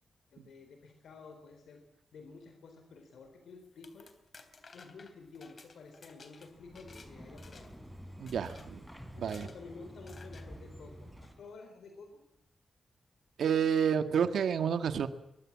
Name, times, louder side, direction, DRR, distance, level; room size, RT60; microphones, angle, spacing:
voice 1, 0.3-1.8 2.1-4.1 4.7-7.7 9.1-12.2, left 4 dB, 90° left, 5 dB, 4.2 m, -51 dB
sound 1, 3.6-7.1 7.4-7.9 8.3-8.7 9.2-9.6 10.1-10.5, left 4 dB, 40° left, 3.5 m, -55 dB
sound 2, 6.5-11.5, equal, ahead, 3.3 m, -49 dB
voice 2, 8.2-8.8 9.2-9.5 13.4-15.1, right 7 dB, 85° right, 10 dB, 1.8 m, -29 dB
24.0 x 22.0 x 7.5 m, 0.83 s
wide cardioid pair, 170°, 0 cm